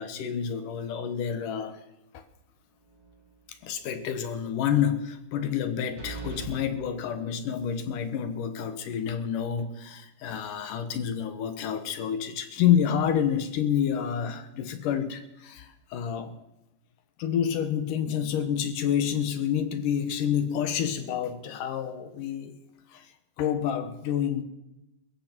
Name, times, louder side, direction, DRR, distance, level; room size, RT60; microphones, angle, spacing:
voice 1, 0.0-1.8 2.1-2.2 3.5-16.3 17.2-22.5 22.9-23.1 23.4-24.4, left 9 dB, 70° left, 9 dB, 2.3 m, -28 dB
sound 1, 2.9-3.3 3.7-3.8 6.0-6.5, right 4 dB, 60° right, 6.9 m, -39 dB
22.0 x 14.5 x 4.5 m, 0.92 s
omnidirectional pair, 4.6 m